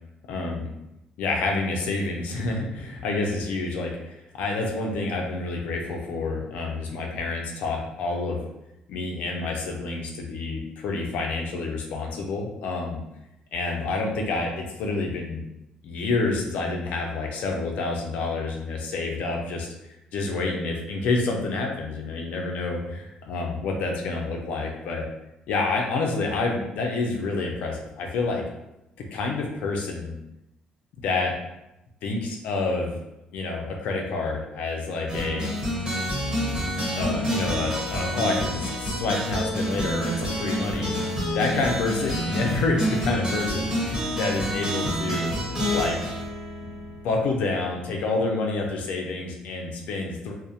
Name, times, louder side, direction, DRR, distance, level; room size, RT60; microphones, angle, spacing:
voice 1, 0.3-0.7 1.2-8.4 8.9-13.0 13.5-15.4 15.8-19.7 20.1-25.1 25.5-28.4 29.1-30.2 30.9-31.4 32.0-33.0 33.3-35.5 36.9-40.9 41.3-45.3 45.7-46.0 46.6-46.7 47.0-50.3, left 3 dB, 80° left, 1 dB, 0.4 m, -28 dB
sound 1, 35.1-47.4, equal, 25° right, 1.0 m, -28 dB
2.3 x 2.0 x 2.7 m, 0.89 s
cardioid pair, 120°, 2 cm